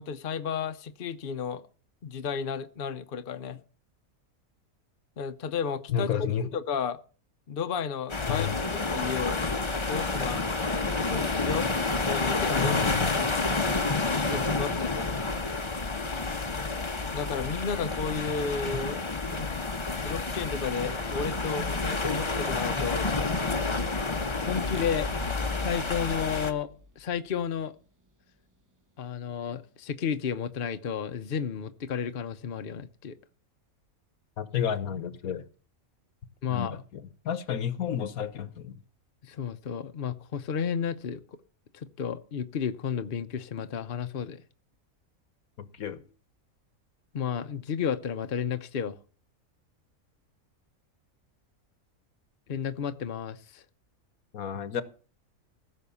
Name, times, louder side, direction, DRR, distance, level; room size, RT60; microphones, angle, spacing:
voice 1, 0.0-1.6 2.0-3.6 5.2-6.1 6.4-7.0 7.5-8.5 8.9-9.4 9.9-10.5 11.0-11.7 12.0-12.9 13.2-15.2 17.1-19.0 19.3-19.6 20.0-23.1 24.5-25.1 25.6-27.7 29.0-33.2 36.4-36.7 39.2-41.2 41.7-44.4 47.1-49.0 52.5-53.6, left 7 dB, 45° left, 0.9 m, -33 dB
voice 2, 5.9-6.4 8.3-8.6 12.6-13.1 34.4-35.4 36.5-38.8 45.6-46.0 54.3-54.8, left 8 dB, 80° left, 1.5 m, -31 dB
sound 1, 8.1-26.5, left 3 dB, 25° left, 0.9 m, -29 dB
sound 2, 24.8-27.4, left 2 dB, 25° right, 0.4 m, -41 dB
15.5 x 6.5 x 6.9 m
omnidirectional pair, 1.5 m